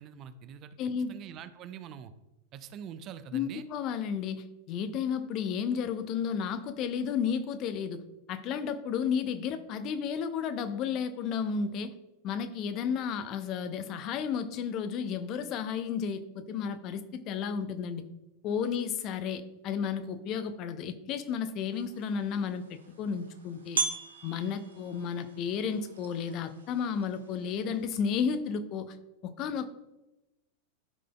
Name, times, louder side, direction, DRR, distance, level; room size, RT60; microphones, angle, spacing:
voice 1, 0.0-0.8 1.1-2.1 2.5-3.6, right 8 dB, 35° right, 12 dB, 0.5 m, -44 dB
voice 2, 0.8-1.2 3.3-8.0 8.3-11.9 12.2-18.0 18.4-23.8 24.2-29.0 29.2-29.7, left 7 dB, 40° left, 11 dB, 0.6 m, -32 dB
sound 1, 21.7-28.4, right 4 dB, 70° right, 0.9 m, -40 dB
13.0 x 5.0 x 2.2 m, 0.98 s
figure-of-eight pair, 90°, 0 cm